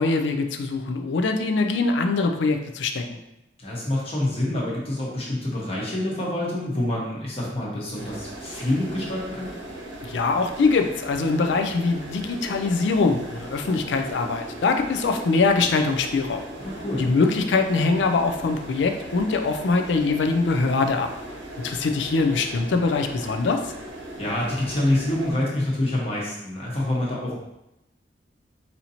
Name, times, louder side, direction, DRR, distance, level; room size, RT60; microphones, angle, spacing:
voice 1, 0.0-3.2 10.0-16.5 17.0-21.1 21.6-23.7, left 3 dB, 90° left, 6 dB, 0.4 m, -23 dB
voice 2, 3.6-9.5 16.6-17.0 24.2-27.3, left 1 dB, 35° left, -5 dB, 1.0 m, -26 dB
sound 1, 7.9-25.3, right 1 dB, 90° right, 0.9 m, -38 dB
4.3 x 2.7 x 2.8 m, 0.88 s
head